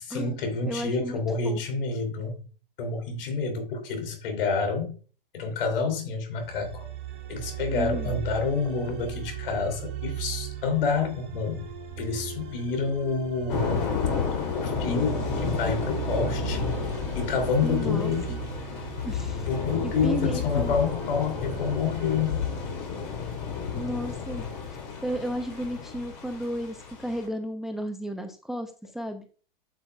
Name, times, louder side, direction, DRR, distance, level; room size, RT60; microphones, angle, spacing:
voice 1, 0.0-2.4 2.8-5.0 5.3-6.9 7.3-11.7 12.0-13.8 14.5-16.6 17.1-18.3 19.5-22.4, left 4 dB, 70° left, 3.1 m, -28 dB
voice 2, 0.7-1.6 7.8-8.2 17.6-18.4 19.0-19.4 19.8-20.7 23.7-24.5 25.0-29.3, equal, ahead, 0.8 m, -33 dB
sound 1, 6.4-23.5, right 10 dB, 40° right, 4.0 m, -38 dB
Thunder / Rain, 13.5-27.3, left 6 dB, 45° left, 3.5 m, -31 dB
8.2 x 7.8 x 2.4 m
hypercardioid pair, 120°, 29 cm